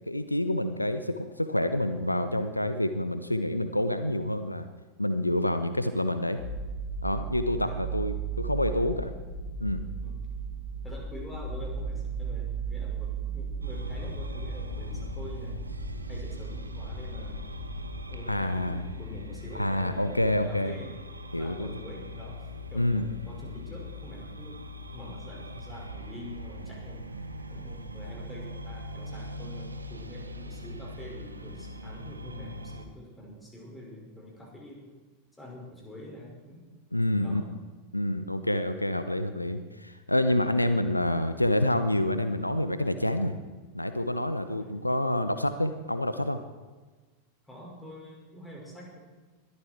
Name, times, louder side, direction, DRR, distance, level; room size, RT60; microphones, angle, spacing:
voice 1, 0.1-4.7 5.0-6.4 7.0-9.1 9.6-9.8 18.3-18.8 19.5-20.8 21.3-21.8 22.7-23.1 36.9-37.4 37.9-43.4 43.7-46.4, left 1 dB, 85° left, 10 dB, 0.8 m, -28 dB
sound 1, 6.4-17.9, right 5 dB, 65° left, 2.8 m, -36 dB
voice 2, 10.8-15.5 16.1-17.4 18.1-20.9 21.4-24.5 24.9-27.1 27.5-34.9 35.4-36.6 37.2-37.5 44.6-44.9 47.5-49.0, equal, 5° left, -2 dB, 5.5 m, -45 dB
sound 2, 13.6-32.9, left 1 dB, 80° right, 1.3 m, -41 dB
21.5 x 13.0 x 4.5 m, 1.3 s
figure-of-eight pair, 90°, 0 cm